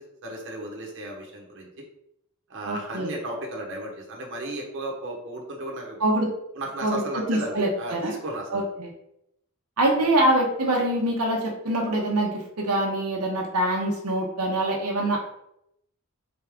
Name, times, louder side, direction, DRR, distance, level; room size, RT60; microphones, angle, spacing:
voice 1, 0.0-1.8 2.5-6.0 6.5-8.6 10.0-10.1, right 1 dB, 55° right, 0 dB, 1.0 m, -34 dB
voice 2, 2.7-3.1 6.0-6.3 6.8-8.1 8.5-8.9 9.8-15.2, right 1 dB, 90° right, -1 dB, 0.9 m, -24 dB
3.8 x 3.6 x 3.5 m, 0.78 s
head